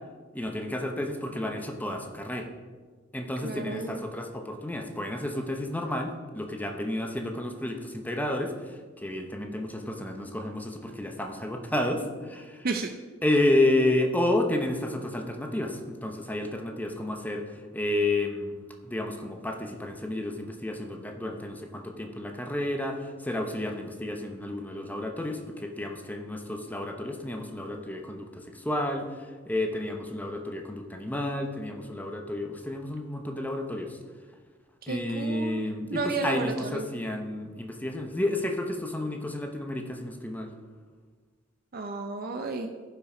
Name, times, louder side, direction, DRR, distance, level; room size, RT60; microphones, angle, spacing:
voice 1, 0.3-2.5 3.1-12.7 13.2-18.5 18.8-34.0 34.9-40.5, left 1 dB, 10° left, 3 dB, 0.9 m, -31 dB
voice 2, 3.4-4.0 12.6-12.9 34.9-36.8 41.7-42.7, right 3 dB, 50° right, 5 dB, 0.6 m, -32 dB
15.0 x 5.8 x 5.0 m, 1.5 s
head